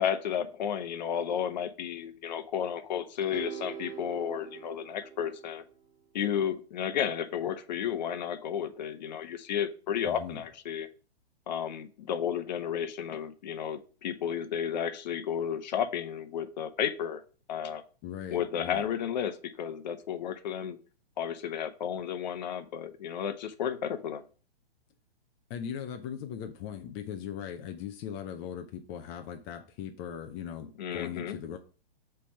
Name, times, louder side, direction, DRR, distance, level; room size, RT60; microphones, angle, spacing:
voice 1, 0.0-5.6 6.1-10.9 11.5-17.2 17.5-17.8 18.3-20.8 21.2-24.2 30.8-31.4, left 8 dB, 45° left, 0.9 m, -32 dB
sound 1, 3.3-5.7, right 8 dB, 10° right, 1.7 m, -43 dB
voice 2, 10.0-10.4 18.0-18.8 25.5-31.6, left 8 dB, 25° left, 0.6 m, -39 dB
8.2 x 3.5 x 5.4 m
figure-of-eight pair, 115°, 30 cm